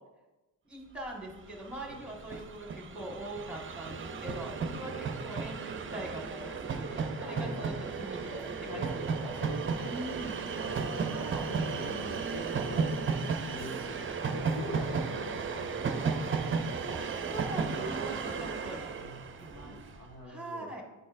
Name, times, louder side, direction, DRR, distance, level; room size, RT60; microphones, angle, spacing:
voice 1, 0.6-9.5 9.8-10.5 11.1-11.6 16.9-17.0 17.3-18.9 19.4-19.8 20.2-20.8, right 1 dB, 5° right, 0 dB, 1.5 m, -42 dB
Train, 1.3-1.4 1.6-20.0, right 5 dB, 30° right, 0.5 m, -34 dB
voice 2, 1.8-2.5 3.7-4.3 7.2-8.3 8.7-13.1 13.4-16.2 19.0-20.7, left 1 dB, 45° left, 0 dB, 2.0 m, -45 dB
9.9 x 4.2 x 2.6 m, 1.1 s
cardioid pair, 75°, 42 cm